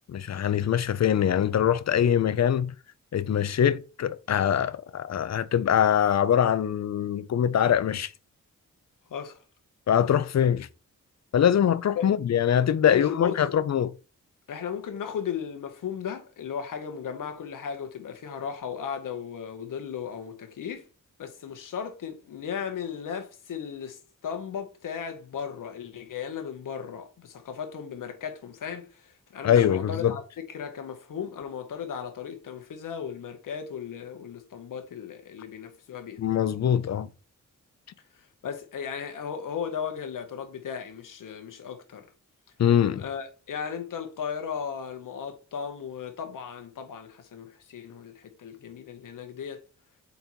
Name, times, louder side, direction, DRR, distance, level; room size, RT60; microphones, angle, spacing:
voice 1, 0.1-2.7 3.1-8.1 9.9-10.7 11.3-13.9 29.4-30.1 36.2-37.1 42.6-43.0, left 9 dB, 55° left, 0.6 m, -23 dB
voice 2, 12.8-13.4 14.5-20.8 21.2-24.0 24.2-30.2 30.5-36.2 38.4-42.0 43.0-49.6, left 7 dB, 85° left, 1.0 m, -36 dB
5.3 x 4.1 x 4.5 m
wide cardioid pair, 90°, 31 cm